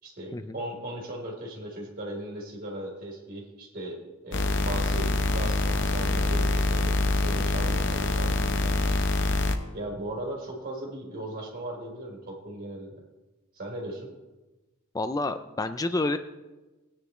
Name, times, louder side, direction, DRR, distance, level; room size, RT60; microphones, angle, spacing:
voice 1, 0.0-9.3 9.7-12.9 13.5-14.1, right 1 dB, 45° right, -3 dB, 3.7 m, -38 dB
sound 1, 4.3-9.6, left 2 dB, 60° left, 0.9 m, -25 dB
voice 2, 14.9-16.2, left 2 dB, 20° left, 9 dB, 0.4 m, -28 dB
19.0 x 9.9 x 3.1 m, 1.1 s
head